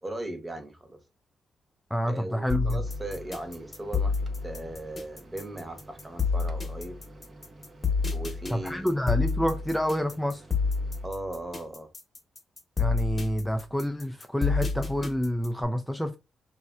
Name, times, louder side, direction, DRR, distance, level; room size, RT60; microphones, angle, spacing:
voice 1, 0.0-1.0 2.1-4.2 4.4-7.0 8.1-8.9 11.0-11.9, right 1 dB, 25° right, 1.1 m, -38 dB
voice 2, 1.9-2.8 8.5-10.4 12.8-16.2, equal, 5° left, 0.4 m, -28 dB
sound 1, 2.5-15.6, left 5 dB, 40° left, 1.0 m, -29 dB
Microwave oven, 2.8-11.1, right 2 dB, 40° right, 0.7 m, -51 dB
3.0 x 2.6 x 2.3 m
supercardioid pair, 50°, 0 cm